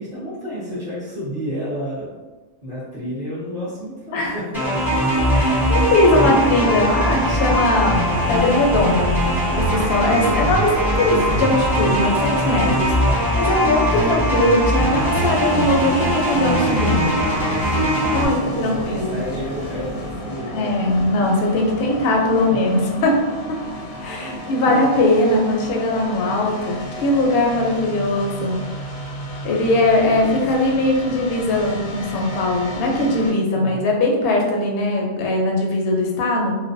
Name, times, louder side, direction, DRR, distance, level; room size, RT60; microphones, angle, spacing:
voice 1, 0.0-2.1 2.6-5.0 5.5-5.8 6.2-6.4 17.2-20.8 21.9-22.0 22.3-22.6 24.2-24.9 30.1-30.4 33.5-33.9, equal, 45° right, -10 dB, 0.6 m, -31 dB
sound 1, 4.5-18.2, equal, ahead, 0.6 m, -20 dB
sound 2, 5.0-20.2, right 1 dB, 75° right, 0.9 m, -36 dB
voice 2, 5.3-8.0 8.3-9.1 9.5-17.1 18.1-19.2 20.5-23.2 24.0-28.6 29.4-36.6, left 1 dB, 60° left, 0 dB, 0.6 m, -20 dB
sound 3, 15.0-33.3, left 1 dB, 85° left, 1.0 m, -33 dB
2.4 x 2.1 x 2.5 m, 1.2 s
omnidirectional pair, 1.4 m